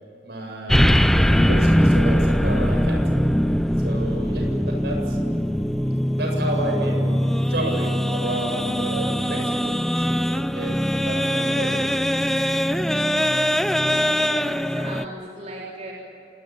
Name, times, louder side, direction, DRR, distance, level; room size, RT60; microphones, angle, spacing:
voice 1, 0.2-3.0 3.8-5.2 6.1-7.2 7.5-11.8, right 1 dB, 65° right, 1 dB, 7.9 m, -31 dB
sound 1, 0.7-15.0, equal, ahead, 0.5 m, -21 dB
voice 2, 14.2-15.9, right 1 dB, 40° right, -4 dB, 3.8 m, -37 dB
28.0 x 20.0 x 8.9 m, 2.9 s
head